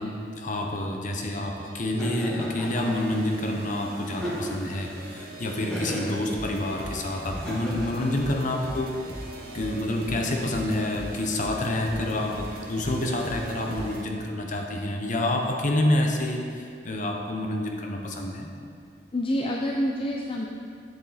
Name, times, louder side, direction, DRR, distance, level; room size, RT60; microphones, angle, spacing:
voice 1, 0.0-9.0 9.5-18.5, left 1 dB, 45° left, 2 dB, 0.9 m, -28 dB
sound 1, 1.5-14.0, right 1 dB, 55° right, 1.0 m, -40 dB
Laughter, 2.0-3.1 4.1-4.8 5.7-6.2 7.3-8.1, equal, 5° left, 1.7 m, -35 dB
voice 2, 19.1-20.5, equal, 30° left, -1 dB, 0.5 m, -27 dB
8.0 x 7.2 x 4.2 m, 2.3 s
head